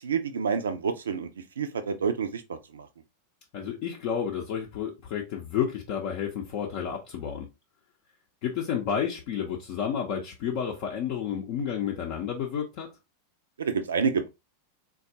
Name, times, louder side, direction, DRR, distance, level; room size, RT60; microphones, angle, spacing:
voice 1, 0.0-2.9 13.6-14.3, right 5 dB, 65° right, 0.4 m, -29 dB
voice 2, 3.5-7.5 8.4-12.9, left 8 dB, 45° left, 0.6 m, -31 dB
3.5 x 2.3 x 2.7 m
figure-of-eight pair, 90°, 0 cm